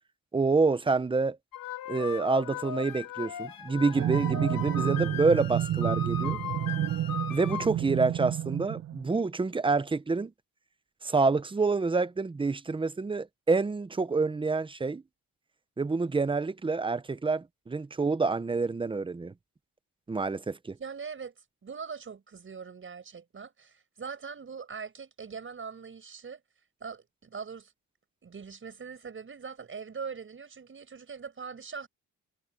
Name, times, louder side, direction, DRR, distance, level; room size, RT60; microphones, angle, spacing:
voice 1, 0.3-1.4 1.9-6.4 7.3-10.3 11.0-15.0 15.8-19.3 20.1-20.8, right 4 dB, 15° right, 0.6 m, -27 dB
sound 1, 1.5-7.7, left 9 dB, 70° left, 3.3 m, -38 dB
sound 2, 3.9-9.1, right 12 dB, 55° right, 0.5 m, -30 dB
voice 2, 20.8-21.3 21.6-26.4 26.8-27.7 28.2-31.9, right 6 dB, 35° right, 5.3 m, -41 dB
wide cardioid pair, 155°, 35 cm